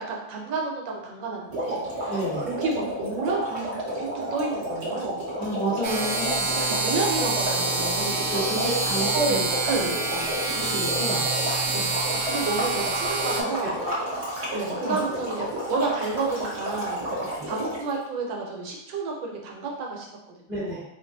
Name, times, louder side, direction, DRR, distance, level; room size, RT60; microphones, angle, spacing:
voice 1, 0.0-5.3 6.5-8.2 8.5-8.6 9.1-9.4 9.7-10.1 11.7-11.9 12.2-13.8 14.5-17.0 17.5-20.1 20.6-20.8, right 3 dB, 90° right, 0 dB, 1.5 m, -30 dB
sound 1, 1.5-18.0, equal, 40° right, 1.3 m, -31 dB
voice 2, 2.1-2.5 5.3-6.5 8.3-9.5 10.1-10.3 10.5-11.2 13.2-13.4 13.8-13.9 14.9-15.0 17.1-17.2 20.5-20.8, right 1 dB, 15° right, -9 dB, 1.2 m, -30 dB
sound 2, 5.8-13.4, right 3 dB, 70° right, 0.9 m, -27 dB
3.0 x 2.6 x 3.8 m, 0.83 s
omnidirectional pair, 2.0 m